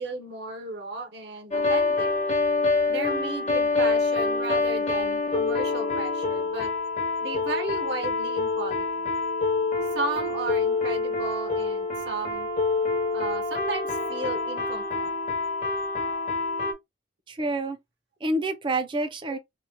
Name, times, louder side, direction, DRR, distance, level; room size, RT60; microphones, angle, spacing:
voice 1, 0.0-2.1 2.9-6.7 7.2-8.8 9.9-12.5 13.1-15.1, right 2 dB, 70° right, 0.7 m, -34 dB
sound 1, 1.5-16.7, left 3 dB, 40° left, 0.6 m, -26 dB
voice 2, 17.3-17.8 18.2-19.4, right 2 dB, 30° right, 0.4 m, -27 dB
3.0 x 2.0 x 2.8 m
head